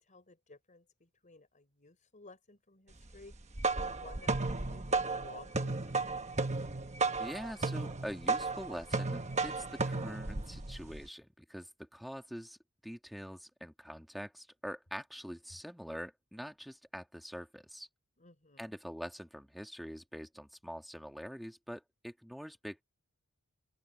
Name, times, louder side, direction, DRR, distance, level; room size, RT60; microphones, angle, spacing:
voice 1, 0.0-3.3 3.7-6.1 18.2-18.7, left 3 dB, 35° left, 4.1 m, -55 dB
sound 1, 3.3-11.1, right 3 dB, 30° right, 1.2 m, -34 dB
voice 2, 7.2-12.6 12.8-17.9 18.6-22.8, equal, ahead, 2.5 m, -45 dB
open air
head